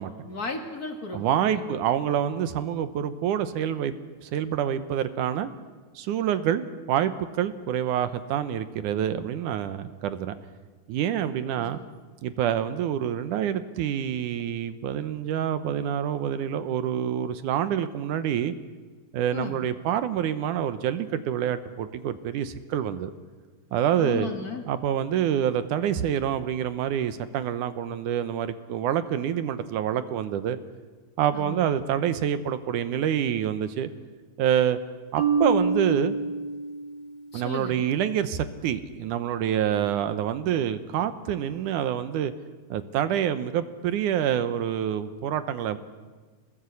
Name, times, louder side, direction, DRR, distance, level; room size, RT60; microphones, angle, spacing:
voice 1, 0.2-1.8 11.6-11.8 19.3-19.7 23.9-24.6 31.3-31.8 37.3-37.8, left 4 dB, 30° left, 4 dB, 2.0 m, -35 dB
voice 2, 1.1-3.9 4.2-5.5 6.0-10.4 10.9-11.8 12.2-18.5 19.1-23.1 23.7-24.3 24.7-30.6 31.2-33.9 34.4-34.8 35.1-36.2 37.3-42.3 42.7-45.8, right 9 dB, 70° right, 12 dB, 2.0 m, -27 dB
Marimba xylophone, 35.2-37.2, right 4 dB, 35° right, 2.0 m, -26 dB
26.5 x 20.0 x 8.4 m, 1.4 s
omnidirectional pair, 4.5 m